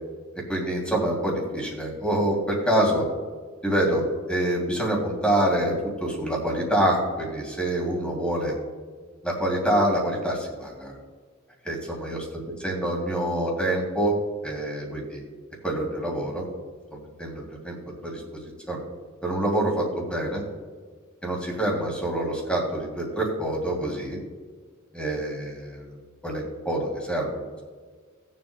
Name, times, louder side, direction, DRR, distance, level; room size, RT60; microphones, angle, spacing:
voice 1, 0.5-3.1 3.6-8.6 9.2-10.9 11.6-12.2 12.6-14.2 14.4-15.2 15.6-16.4 16.9-17.8 18.0-18.8 19.2-20.4 21.2-24.2 24.9-25.9 26.2-27.6, right 1 dB, 5° left, -1 dB, 2.7 m, -26 dB
20.0 x 7.6 x 2.2 m, 1.5 s
head